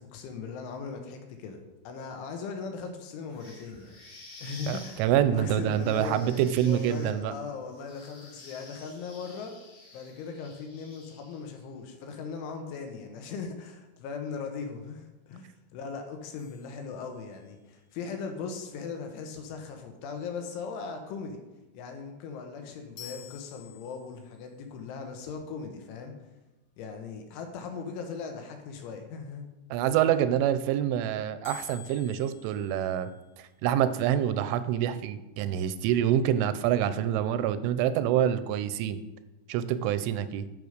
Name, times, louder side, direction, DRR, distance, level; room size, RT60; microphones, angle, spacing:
voice 1, 0.0-4.0 4.4-5.1 5.3-6.3 6.6-9.5 9.9-21.4 21.7-26.1 26.8-29.5, left 5 dB, 85° left, 5 dB, 3.6 m, -39 dB
sound 1, 3.3-11.6, left 2 dB, 40° left, 2.5 m, -50 dB
voice 2, 4.7-7.3 29.7-33.1 33.4-39.0 39.5-40.5, right 10 dB, 85° right, 12 dB, 3.0 m, -26 dB
sound 2, 16.4-17.7 23.0-24.4 31.4-33.6, left 11 dB, 70° left, 1.7 m, -50 dB
9.4 x 6.4 x 5.1 m, 1.0 s
omnidirectional pair, 5.4 m